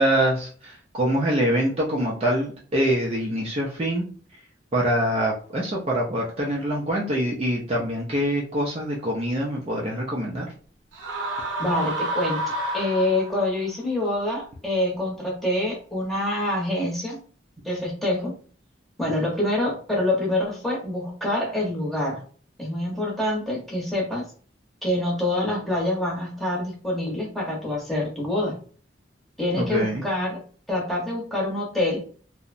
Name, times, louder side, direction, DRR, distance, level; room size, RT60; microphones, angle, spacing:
voice 1, 0.0-4.1 4.7-10.5 29.5-30.0, right 1 dB, 30° right, -3 dB, 0.4 m, -24 dB
sound 1, 10.9-13.6, right 1 dB, 90° right, 0.7 m, -29 dB
voice 2, 11.6-12.4 12.7-17.2 17.6-18.3 19.0-22.2 22.6-24.3 24.8-28.6 29.4-30.4 30.7-32.0, left 1 dB, ahead, -3 dB, 0.8 m, -26 dB
2.8 x 2.0 x 2.5 m, 0.43 s
head